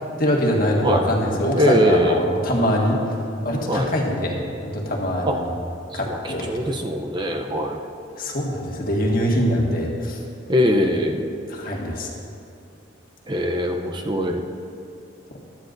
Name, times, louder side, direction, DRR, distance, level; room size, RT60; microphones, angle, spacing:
voice 1, 0.2-3.0 3.4-5.5 5.9-6.5 8.2-10.2 11.5-12.1, equal, 50° left, -1 dB, 1.6 m, -23 dB
voice 2, 1.5-2.3 3.7-3.9 5.3-5.4 5.9-7.8 10.5-11.3 13.3-14.4, equal, 25° right, 3 dB, 0.6 m, -22 dB
16.0 x 11.5 x 2.6 m, 2.6 s
head